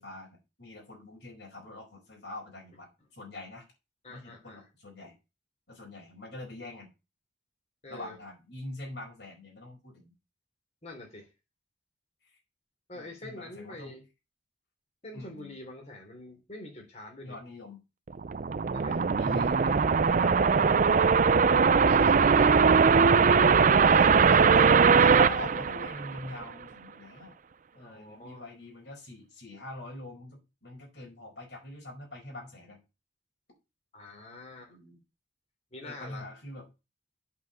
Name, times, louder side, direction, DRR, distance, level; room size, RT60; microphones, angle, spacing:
voice 1, 0.0-3.6 4.1-5.1 5.7-6.9 7.9-10.1 12.2-12.4 12.9-13.9 15.1-15.6 17.2-17.8 18.9-19.8 20.2-20.8 22.4-22.9 25.1-27.4 27.7-32.8 34.7-35.0 35.8-36.7, left 1 dB, 60° left, 4.8 m, -44 dB
voice 2, 4.0-4.7 7.8-8.2 10.8-11.3 12.9-14.0 15.0-17.4 18.7-19.0 21.8-23.1 23.4-25.4 27.7-28.4 33.9-34.7 35.7-36.3, left 1 dB, 35° left, 3.3 m, -44 dB
sound 1, 18.1-26.4, right 5 dB, 45° right, 0.4 m, -21 dB
8.2 x 5.1 x 7.2 m
head